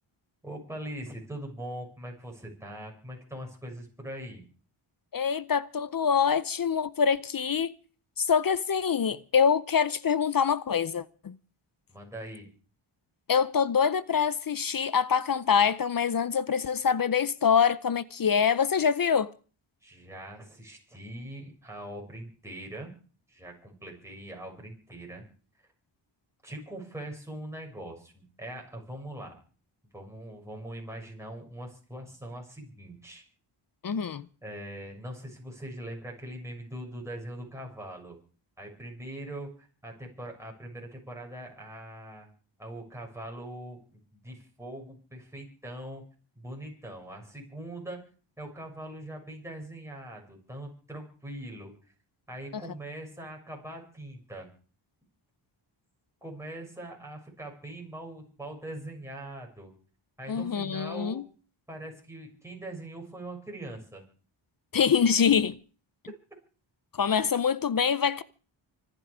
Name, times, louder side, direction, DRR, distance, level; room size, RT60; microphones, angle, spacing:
voice 1, 0.4-4.4 11.9-12.5 19.8-22.9 23.3-25.2 26.4-29.4 29.9-33.2 34.4-38.2 38.6-42.3 42.6-43.8 44.1-46.0 46.3-48.0 48.4-51.7 52.3-54.5 56.2-59.7 60.2-61.3 61.7-64.0, right 1 dB, 5° right, 6.7 m, -42 dB
voice 2, 5.1-7.7 8.2-11.4 13.3-19.3 33.8-34.3 52.5-52.6 60.3-61.2 64.7-65.6 66.9-68.2, left 7 dB, 45° left, 0.7 m, -25 dB
25.5 x 10.0 x 5.0 m
wide cardioid pair, 110°, 48 cm